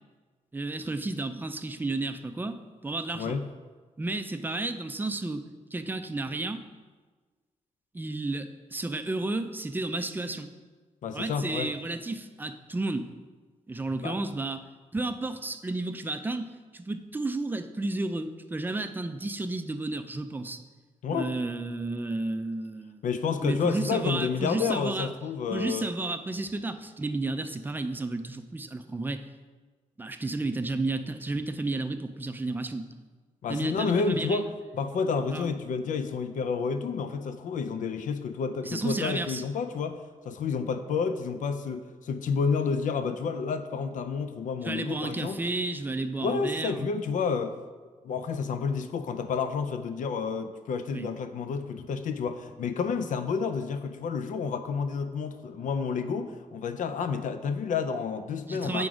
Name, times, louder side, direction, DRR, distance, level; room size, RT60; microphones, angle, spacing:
voice 1, 0.5-3.4 4.0-5.4 5.7-6.6 7.9-8.5 8.7-10.5 11.1-13.1 13.7-14.6 14.9-20.6 21.1-23.0 23.4-25.1 25.5-29.2 30.0-32.9 33.5-34.4 35.3-35.5 38.6-39.4 44.6-46.9 50.9-51.1 58.5-58.9, right 2 dB, 15° right, 8 dB, 0.4 m, -32 dB
voice 2, 3.1-3.5 11.0-11.7 14.0-14.2 21.0-21.3 23.0-25.8 33.4-40.0 40.3-45.4 46.2-47.6 48.0-58.9, left 5 dB, 75° left, 10 dB, 0.5 m, -30 dB
7.7 x 5.2 x 4.8 m, 1.4 s
wide cardioid pair, 140°, 13 cm